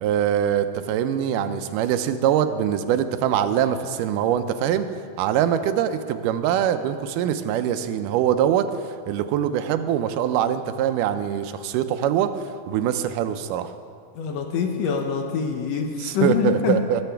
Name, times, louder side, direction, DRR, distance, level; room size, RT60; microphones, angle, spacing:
voice 1, 0.0-4.9 5.2-8.7 9.1-12.3 12.7-13.7 16.0-17.0, right 10 dB, 85° right, 9 dB, 2.1 m, -23 dB
voice 2, 14.1-16.8, left 6 dB, 75° left, 3 dB, 1.5 m, -24 dB
19.5 x 7.0 x 3.4 m, 2.3 s
omnidirectional pair, 3.7 m